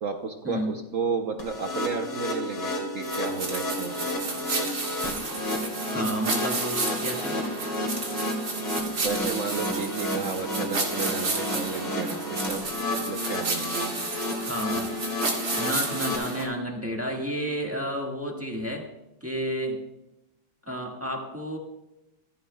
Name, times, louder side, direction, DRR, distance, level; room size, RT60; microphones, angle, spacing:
voice 1, 0.0-4.1 9.0-12.6 12.9-13.9, right 5 dB, 75° right, 4 dB, 0.7 m, -32 dB
sound 1, 1.4-16.2, left 1 dB, 75° left, 2.9 m, -32 dB
sound 2, 3.0-16.5, right 3 dB, 55° right, 2.5 m, -32 dB
voice 2, 5.9-7.3 14.4-15.0 15.6-18.8 19.2-19.8 20.7-21.6, equal, 10° right, 0 dB, 1.1 m, -31 dB
15.5 x 14.5 x 2.2 m, 0.93 s
omnidirectional pair, 2.2 m